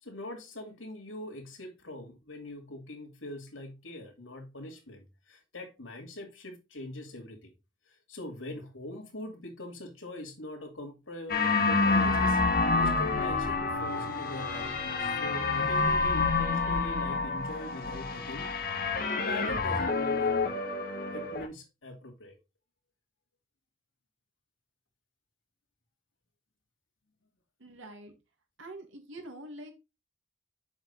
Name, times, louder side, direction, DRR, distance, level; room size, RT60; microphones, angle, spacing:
voice 1, 0.0-7.5 7.9-12.4 12.8-18.5 19.3-20.6 21.1-22.4, left 1 dB, 85° left, 3 dB, 2.5 m, -42 dB
sound 1, 11.3-21.5, left 3 dB, 50° left, 1.4 m, -28 dB
voice 2, 27.6-28.1 28.6-29.7, right 1 dB, 90° right, 5 dB, 2.1 m, -45 dB
7.0 x 5.3 x 4.0 m, 0.26 s
head